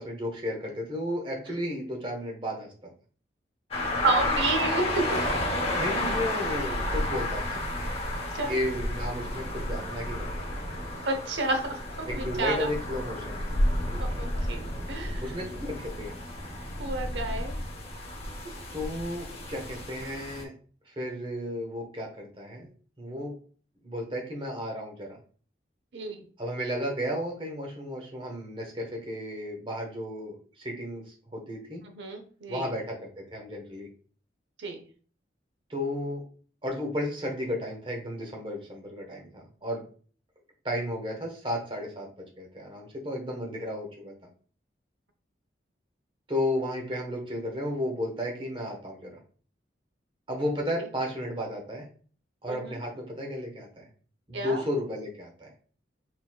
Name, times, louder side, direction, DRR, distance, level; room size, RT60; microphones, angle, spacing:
voice 1, 0.0-2.9 5.7-7.6 8.4-10.2 12.0-13.4 15.2-16.3 18.7-20.5 20.9-22.7 23.0-23.3 23.8-25.2 26.4-31.8 32.5-33.9 35.7-36.2 36.6-39.8 40.6-42.1 42.4-44.1 46.3-49.2 50.3-51.9 52.4-53.9 54.3-55.5, left 1 dB, 30° right, 0 dB, 1.1 m, -33 dB
sound 1, 3.7-20.4, left 1 dB, 35° left, 1.0 m, -31 dB
voice 2, 4.0-5.0 8.3-8.6 11.0-12.7 13.9-15.2 16.8-17.5 25.9-26.2 32.0-32.7 34.6-34.8 52.5-52.8 54.3-54.6, right 3 dB, 85° right, 5 dB, 0.8 m, -30 dB
4.2 x 4.2 x 2.3 m, 0.42 s
head